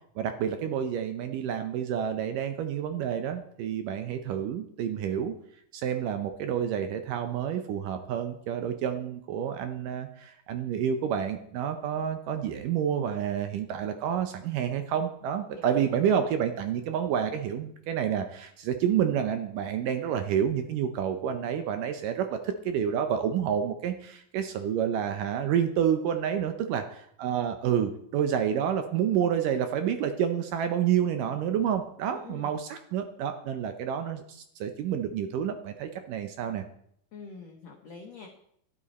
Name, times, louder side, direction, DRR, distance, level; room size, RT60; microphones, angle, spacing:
voice 1, 0.2-5.4 5.7-36.6, right 8 dB, 75° right, 7 dB, 2.0 m, -29 dB
voice 2, 15.5-16.2 32.1-32.5 37.1-38.3, left 5 dB, 65° left, 1 dB, 1.7 m, -45 dB
12.5 x 11.5 x 4.2 m, 0.70 s
omnidirectional pair, 4.5 m